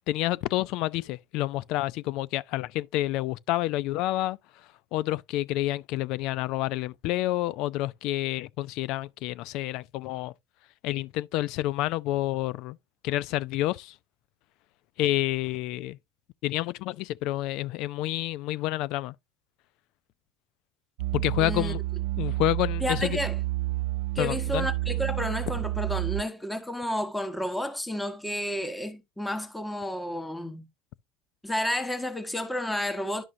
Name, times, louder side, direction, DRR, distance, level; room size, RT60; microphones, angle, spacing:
voice 1, 0.1-4.4 4.9-10.3 10.8-12.8 13.0-13.9 15.0-16.0 16.4-19.1 21.1-21.8 22.2-23.2 24.2-24.7, left 16 dB, 65° left, 0.5 m, -29 dB
sound 1, 21.0-26.2, right 18 dB, 90° right, 0.4 m, -30 dB
voice 2, 21.4-21.7 22.8-23.4 24.1-30.7 31.4-33.2, left 1 dB, 5° left, 1.3 m, -31 dB
11.0 x 6.2 x 2.7 m
supercardioid pair, 105°, 0 cm